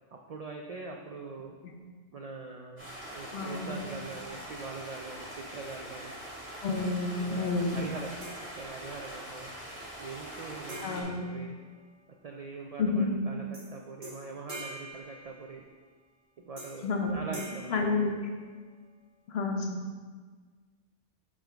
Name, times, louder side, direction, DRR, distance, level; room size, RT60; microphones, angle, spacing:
voice 1, 0.1-1.5 2.1-6.1 7.1-8.1 8.4-9.5 10.0-11.6 12.2-15.6 16.4-17.8, right 4 dB, 60° right, 1 dB, 0.4 m, -43 dB
Stream, 2.8-11.0, right 1 dB, 10° right, 1.7 m, -43 dB
voice 2, 3.3-3.7 6.6-7.8 10.8-11.4 12.8-13.3 16.8-17.2 17.7-18.3 19.3-19.8, left 3 dB, 70° left, 3 dB, 1.0 m, -30 dB
sound 1, 8.2-9.2 10.7-12.3 13.5-13.7 14.0-15.8 16.6-17.0 17.3-18.8, right 1 dB, 35° right, 1.5 m, -46 dB
8.6 x 3.8 x 3.4 m, 1.5 s
omnidirectional pair, 1.1 m